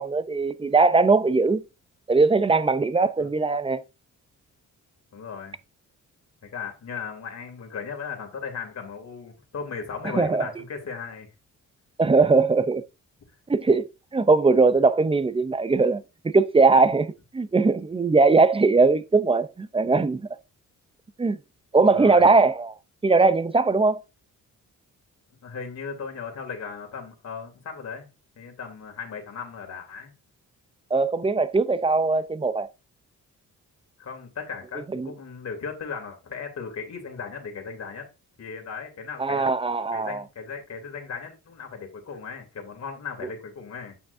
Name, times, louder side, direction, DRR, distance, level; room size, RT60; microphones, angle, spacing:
voice 1, 0.0-1.6 2.1-3.8 10.1-10.5 12.0-12.8 13.5-13.9 14.1-20.2 21.2-21.4 21.7-22.7 23.0-24.0 30.9-32.7 34.9-35.1 39.2-40.2, right 3 dB, 15° right, 0.6 m, -20 dB
voice 2, 5.1-5.6 6.4-11.3 21.8-22.2 25.4-28.1 28.4-30.1 34.0-38.1 38.4-39.5 39.9-44.0, left 5 dB, 55° left, 2.9 m, -37 dB
8.9 x 5.8 x 2.6 m
cardioid pair, 115°, 32 cm